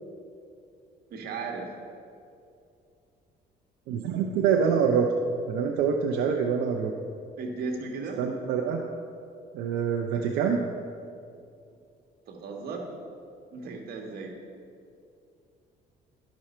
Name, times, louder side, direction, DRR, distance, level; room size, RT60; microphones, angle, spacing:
voice 1, 1.1-1.7 7.4-8.2 12.3-12.9 13.5-14.4, right 4 dB, 65° right, 2 dB, 1.6 m, -35 dB
voice 2, 3.9-5.1 5.5-6.9 8.2-8.8 9.5-10.6, right 7 dB, 85° right, 2 dB, 0.6 m, -25 dB
11.5 x 6.2 x 4.3 m, 2.4 s
cardioid pair, 110°, 17 cm